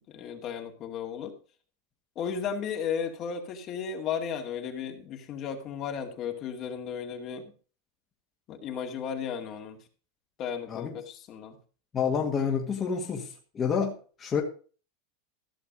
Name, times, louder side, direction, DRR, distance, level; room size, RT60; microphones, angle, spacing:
voice 1, 0.1-1.3 2.2-7.5 8.5-9.8 10.4-11.6, left 7 dB, 45° left, 4 dB, 2.3 m, -34 dB
voice 2, 11.9-13.3 13.5-14.4, left 6 dB, 25° left, 0 dB, 1.9 m, -28 dB
14.5 x 6.9 x 5.2 m, 0.39 s
hypercardioid pair, 110°, 0 cm